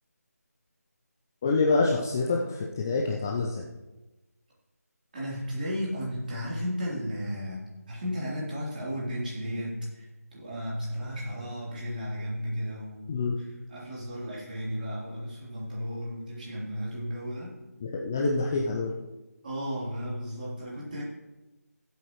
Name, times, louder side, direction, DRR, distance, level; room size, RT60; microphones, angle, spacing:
voice 1, 1.4-3.6 13.1-13.3 17.9-18.9, left 3 dB, 10° left, -1 dB, 0.4 m, -26 dB
voice 2, 5.1-17.6 19.4-21.0, equal, 30° right, -6 dB, 3.5 m, -34 dB
16.0 x 8.1 x 3.1 m, 1.1 s
figure-of-eight pair, 160°, 9 cm